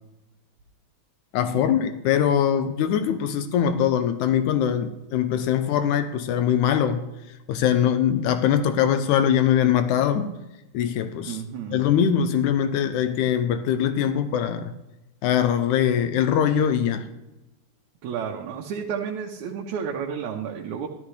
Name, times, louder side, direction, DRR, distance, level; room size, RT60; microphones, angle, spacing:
voice 1, 1.3-7.0 7.5-10.3 10.7-11.4 11.7-14.7 15.2-17.1, left 9 dB, 85° left, 2.1 m, -22 dB
voice 2, 11.3-11.9 18.0-20.9, right 7 dB, 75° right, 2.2 m, -31 dB
13.0 x 13.0 x 3.2 m
omnidirectional pair, 3.4 m